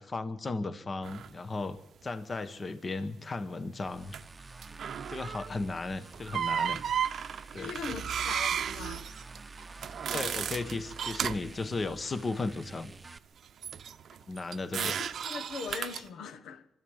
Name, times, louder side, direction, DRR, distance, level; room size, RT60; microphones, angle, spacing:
voice 1, 0.0-4.2 5.1-6.8 7.5-8.0 10.1-12.9 14.3-14.9, left 3 dB, 30° left, 1.1 m, -35 dB
sound 1, 1.0-1.3 4.1-4.3 4.6-5.5 6.1-11.5 13.6-16.1, right 8 dB, 60° right, 0.8 m, -34 dB
sound 2, 3.8-13.2, right 3 dB, 25° right, 0.8 m, -49 dB
voice 2, 7.6-9.1 14.8-16.7, left 5 dB, 80° left, 1.5 m, -41 dB
24.0 x 13.0 x 8.8 m
cardioid pair, 115°, 0 cm